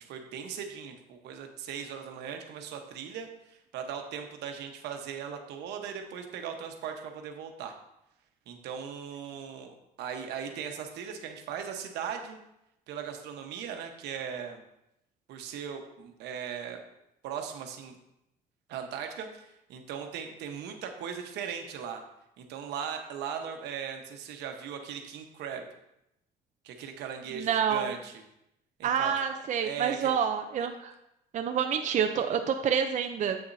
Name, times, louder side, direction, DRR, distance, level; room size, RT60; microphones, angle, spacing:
voice 1, 0.0-7.7 8.5-12.4 12.9-14.6 15.3-16.8 17.2-18.0 18.7-22.0 22.4-25.7 26.6-28.2 28.8-29.1 29.6-30.1, right 7 dB, 85° right, 4 dB, 1.1 m, -38 dB
voice 2, 27.3-27.9 28.8-30.9 31.3-33.4, right 7 dB, 45° right, 6 dB, 0.6 m, -28 dB
7.9 x 7.0 x 2.7 m, 0.85 s
cardioid pair, 110°, 17 cm